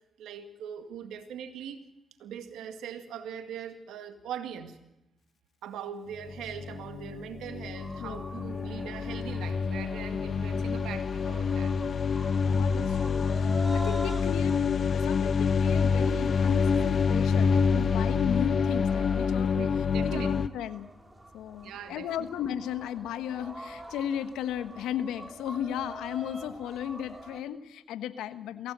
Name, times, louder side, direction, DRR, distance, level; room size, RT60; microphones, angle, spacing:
voice 1, 0.2-1.8 2.2-4.8 5.6-11.7 19.5-20.3 21.6-22.1, right 8 dB, 75° right, 7 dB, 1.9 m, -41 dB
sound 1, 6.2-20.5, left 5 dB, 55° left, 0.7 m, -27 dB
sound 2, 7.7-27.4, right 1 dB, 15° right, 4.5 m, -46 dB
voice 2, 12.4-14.6 14.9-19.5 20.0-20.9 21.3-28.7, left 10 dB, 80° left, 11 dB, 1.1 m, -35 dB
23.0 x 16.0 x 8.0 m, 0.91 s
hypercardioid pair, 40°, 0 cm